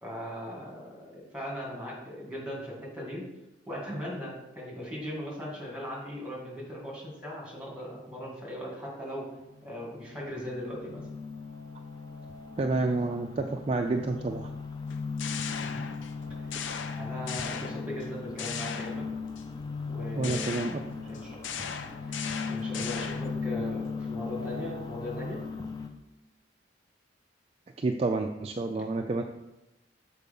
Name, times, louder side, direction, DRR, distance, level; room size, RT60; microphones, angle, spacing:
voice 1, 0.0-3.2 3.7-9.3 9.6-11.0 15.5-15.9 16.9-19.1 19.9-20.5 20.9-21.4 22.1-25.4, equal, 5° right, -4 dB, 2.2 m, -39 dB
sound 1, 9.4-25.9, left 4 dB, 20° left, 0.5 m, -38 dB
voice 2, 12.6-14.5 20.2-20.8 27.8-29.2, right 3 dB, 30° right, 4 dB, 0.3 m, -29 dB
sound 2, 14.9-16.2 16.5-18.1 18.4-19.4 20.2-23.4, left 7 dB, 85° left, 0.6 m, -38 dB
6.7 x 4.6 x 5.3 m, 0.96 s
head